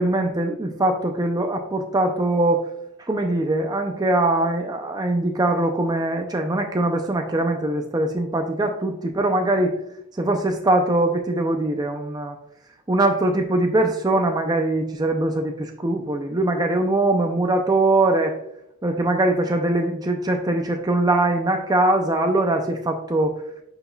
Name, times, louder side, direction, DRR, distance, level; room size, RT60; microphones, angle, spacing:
voice 1, 0.0-2.7 3.0-9.7 10.2-12.4 12.9-18.4 18.8-23.4, right 2 dB, 20° right, 4 dB, 0.5 m, -22 dB
9.3 x 5.9 x 2.3 m, 0.78 s
head